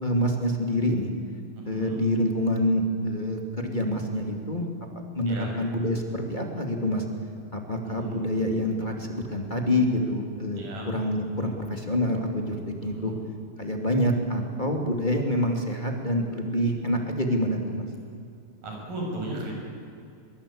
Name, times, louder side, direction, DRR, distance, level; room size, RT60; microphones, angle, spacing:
voice 1, 0.0-1.1 1.6-4.7 5.1-7.0 7.5-12.6 12.8-13.1 13.6-17.9, left 1 dB, 15° left, 3 dB, 2.1 m, -26 dB
voice 2, 1.7-2.0 5.3-5.5 7.9-8.2 10.6-10.9 12.8-13.1 18.6-19.5, right 1 dB, 65° right, -1 dB, 8.0 m, -35 dB
23.5 x 22.5 x 8.7 m, 2.5 s
omnidirectional pair, 4.2 m